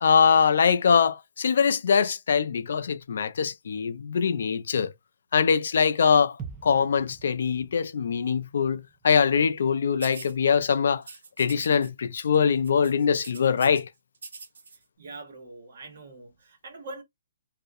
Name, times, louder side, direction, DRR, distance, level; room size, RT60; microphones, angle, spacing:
voice 1, 0.0-4.9 5.3-6.4 6.6-11.0 11.4-13.9, left 6 dB, 60° left, 0.3 m, -23 dB
sound 1, 6.4-10.3 10.6-10.7, right 6 dB, 15° right, 0.4 m, -46 dB
sound 2, 10.0-10.3 11.0-11.9 12.1-12.4 12.6-13.8 14.2-14.8, right 4 dB, 90° right, 0.7 m, -43 dB
voice 2, 15.0-17.0, right 2 dB, 55° right, 1.0 m, -43 dB
2.3 x 2.0 x 2.6 m
hypercardioid pair, 170°, 0 cm